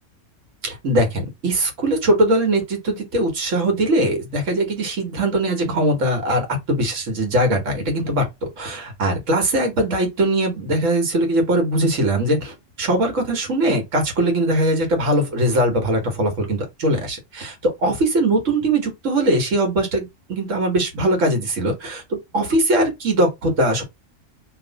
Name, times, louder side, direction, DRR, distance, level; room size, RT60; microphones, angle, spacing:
voice 1, 0.6-8.2 8.6-23.8, right 1 dB, 75° right, 1.6 m, -21 dB
3.1 x 2.6 x 3.9 m
omnidirectional pair, 1.3 m